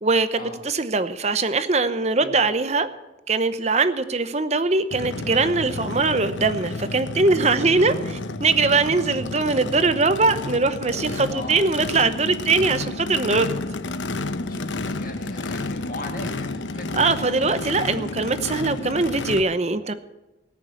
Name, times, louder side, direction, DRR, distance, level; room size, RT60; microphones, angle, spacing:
voice 1, 0.0-2.9 3.3-7.9 8.4-13.6 16.9-19.9, right 3 dB, 35° right, 12 dB, 0.8 m, -21 dB
Race car auto racing / Idling / Accelerating revving vroom, 4.9-19.4, left 3 dB, 80° left, 0.9 m, -31 dB
voice 2, 7.6-8.2 8.9-9.4 11.3-11.7 14.5-17.6, left 1 dB, 45° left, 2 dB, 2.3 m, -38 dB
18.5 x 6.8 x 8.3 m, 1.1 s
head